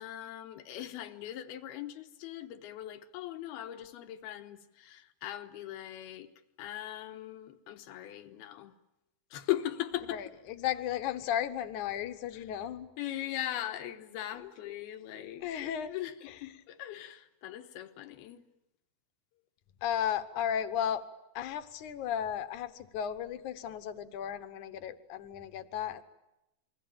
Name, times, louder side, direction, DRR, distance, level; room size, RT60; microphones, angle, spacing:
voice 1, 0.0-6.3 6.6-8.7 9.3-10.3 12.3-12.6 13.0-18.4, left 13 dB, 85° left, 3.2 m, -39 dB
voice 2, 10.6-12.9 15.4-15.9 19.8-21.0 21.4-26.0, left 9 dB, 65° left, 2.2 m, -34 dB
28.5 x 22.0 x 8.8 m
omnidirectional pair, 4.4 m